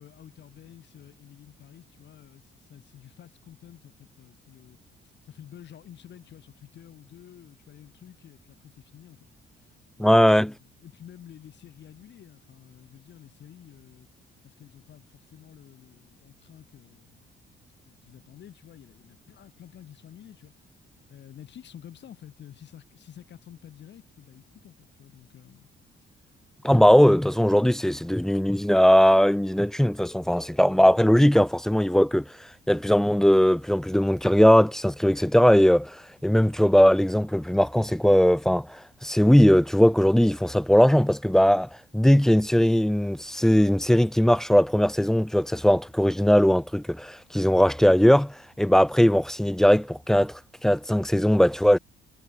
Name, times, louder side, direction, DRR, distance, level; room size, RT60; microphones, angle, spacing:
voice 1, 0.0-4.8 5.0-9.3 9.6-10.3 10.6-14.1 14.4-17.3 17.8-20.5 21.1-25.7 26.2-26.3, left 10 dB, 65° left, 3.3 m, -50 dB
voice 2, 10.0-10.5 26.6-32.3 32.7-51.8, equal, ahead, 0.3 m, -19 dB
cardioid pair, 90°, 20 cm